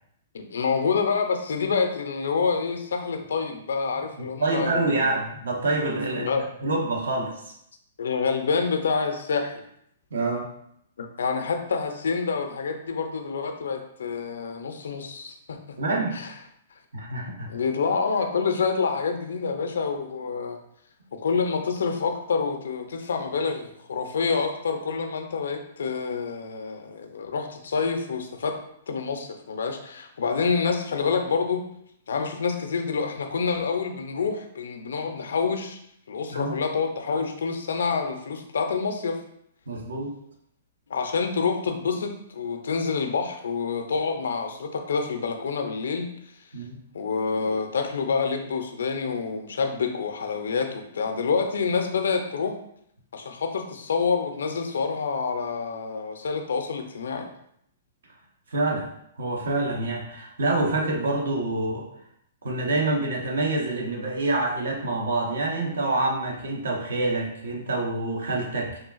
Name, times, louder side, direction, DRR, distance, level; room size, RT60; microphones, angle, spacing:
voice 1, 0.3-5.2 6.1-6.5 8.0-9.6 11.0-15.6 16.1-16.3 17.4-20.6 21.1-28.6 28.9-31.7 32.1-35.8 36.1-39.2 40.9-46.1 46.9-52.6 53.1-57.3, left 5 dB, 75° left, 5 dB, 0.4 m, -27 dB
voice 2, 4.2-6.3 6.6-7.4 10.1-10.5 15.8-16.2 16.9-17.5 36.3-36.6 39.7-40.2 46.5-46.8 58.5-58.9 59.2-61.9 62.4-68.8, right 2 dB, 80° right, 0 dB, 0.7 m, -26 dB
3.2 x 2.4 x 2.3 m, 0.72 s
hypercardioid pair, 130°, 0 cm